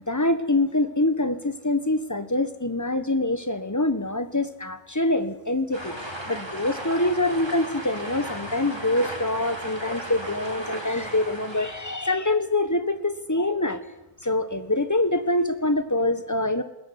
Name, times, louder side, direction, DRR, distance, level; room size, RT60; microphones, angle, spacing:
voice 1, 0.0-5.9 6.3-13.8 14.2-16.6, left 2 dB, 10° left, 11 dB, 1.4 m, -25 dB
sound 1, 5.7-12.1, right 1 dB, 15° right, 4.2 m, -36 dB
21.0 x 18.5 x 9.6 m, 0.98 s
omnidirectional pair, 1.6 m